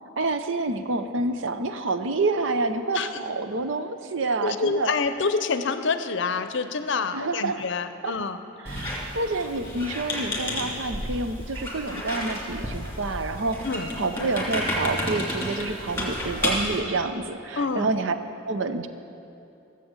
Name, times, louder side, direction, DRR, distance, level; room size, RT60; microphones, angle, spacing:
voice 1, 0.2-4.9 7.1-7.6 8.0-8.1 8.6-13.6 14.0-18.1 18.4-18.9, right 3 dB, 65° right, 9 dB, 0.7 m, -28 dB
voice 2, 4.4-8.4 13.6-13.9 17.6-17.9, left 4 dB, 60° left, 10 dB, 0.6 m, -27 dB
Squeak, 8.7-16.8, left 1 dB, 10° left, 2.6 m, -31 dB
14.5 x 7.7 x 7.2 m, 2.8 s
head